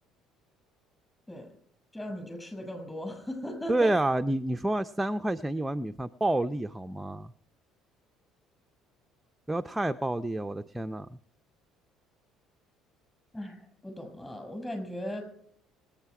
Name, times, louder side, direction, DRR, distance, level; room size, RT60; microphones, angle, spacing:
voice 1, 1.9-3.9 13.3-15.2, left 1 dB, 10° left, 5 dB, 6.1 m, -38 dB
voice 2, 3.7-7.3 9.5-11.2, right 1 dB, 10° right, 7 dB, 0.5 m, -29 dB
25.5 x 9.1 x 4.8 m, 0.63 s
cardioid pair, 105°, 0 cm